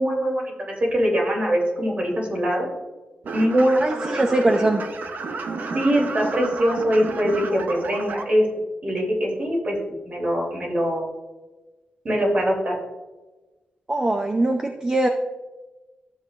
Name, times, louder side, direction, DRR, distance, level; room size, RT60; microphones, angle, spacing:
voice 1, 0.0-2.7 3.3-4.2 5.7-8.4 8.8-9.7 10.0-11.0 12.0-12.7, equal, 45° right, -2 dB, 3.1 m, -22 dB
sound 1, 3.2-8.2, right 3 dB, 65° right, 0.8 m, -31 dB
voice 2, 3.7-4.8 13.9-15.1, right 2 dB, 25° right, 4 dB, 0.5 m, -22 dB
13.0 x 7.2 x 2.5 m, 1.2 s
wide cardioid pair, 145°, 3 cm